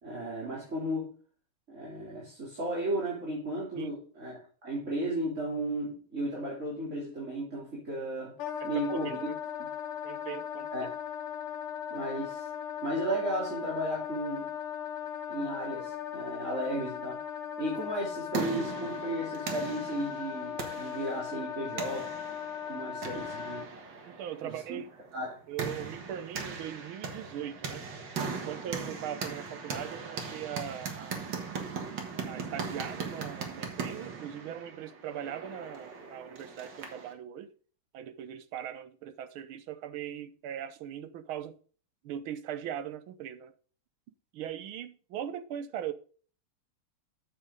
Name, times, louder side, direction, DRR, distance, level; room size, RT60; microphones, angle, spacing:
voice 1, 0.0-1.1 1.7-8.4 8.6-9.3 9.6-9.7 10.7-10.9 11.9-12.5 12.8-14.5 15.3-17.2 17.6-22.1 22.7-23.7 24.4-24.8 25.1-25.4, right 1 dB, 35° right, 3.5 m, -34 dB
Wind instrument woodwind instrument, 8.4-23.7, left 9 dB, 85° left, 2.0 m, -38 dB
voice 2, 8.6-9.3 10.0-10.7 11.9-12.0 24.1-24.9 25.5-27.9 28.3-31.2 32.3-37.5 37.9-41.6 42.0-43.5 44.3-45.9, right 10 dB, 75° right, 1.6 m, -40 dB
sound 1, 17.9-37.1, right 5 dB, 55° right, 2.1 m, -39 dB
9.7 x 7.3 x 3.8 m
omnidirectional pair, 2.4 m